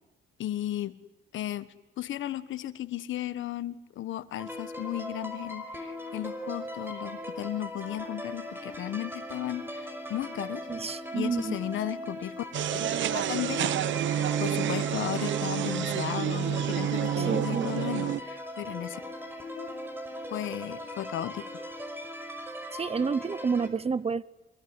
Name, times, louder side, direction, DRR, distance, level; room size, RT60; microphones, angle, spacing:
voice 1, 0.4-1.0 1.3-1.7 2.0-10.7 11.1-12.5 12.7-12.9 13.1-13.8 14.4-19.0 19.6-19.8 20.3-21.5, left 13 dB, 75° left, 1.4 m, -35 dB
sound 1, 4.4-23.7, left 1 dB, 10° right, 5.5 m, -39 dB
voice 2, 10.7-11.6 17.2-17.7 22.7-24.2, right 5 dB, 30° right, 0.9 m, -29 dB
sound 2, 12.5-18.2, right 10 dB, 70° right, 1.0 m, -29 dB
26.5 x 21.5 x 9.8 m
cardioid pair, 90°, 20 cm